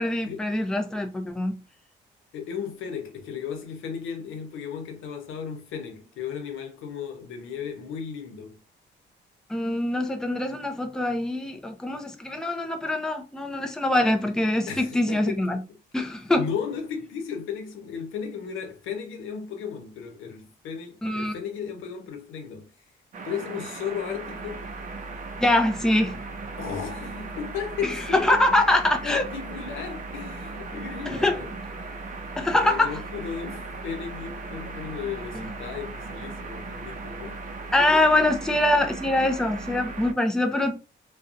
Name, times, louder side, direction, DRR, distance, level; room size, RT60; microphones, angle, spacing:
voice 1, 0.0-1.5 9.5-15.6 15.9-16.5 21.0-21.3 25.4-26.2 28.2-29.2 31.1-31.3 32.4-32.9 35.3-35.5 37.7-40.8, left 1 dB, 5° left, 0.5 m, -24 dB
voice 2, 2.3-8.6 14.7-15.5 16.4-22.7 23.2-24.6 26.6-28.4 29.0-31.9 32.5-37.4 38.2-38.3, left 7 dB, 85° left, 0.8 m, -35 dB
sound 1, 23.1-40.1, right 3 dB, 40° right, 0.6 m, -37 dB
2.6 x 2.2 x 2.4 m
cardioid pair, 90°, 20 cm